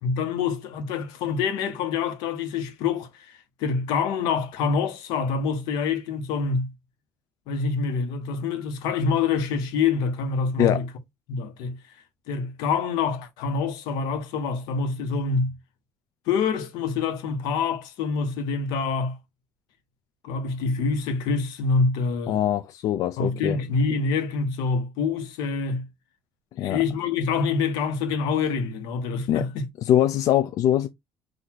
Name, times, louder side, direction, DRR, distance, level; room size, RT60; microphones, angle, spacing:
voice 1, 0.0-6.7 7.5-10.9 11.3-11.8 12.3-15.5 16.3-19.2 20.2-22.4 23.2-25.9 26.6-29.7, left 5 dB, 85° left, 1.3 m, -26 dB
voice 2, 22.3-23.6 26.6-26.8 29.3-29.4 29.9-30.9, left 11 dB, 55° left, 0.4 m, -22 dB
4.0 x 2.7 x 4.6 m
cardioid pair, 160°, 7 cm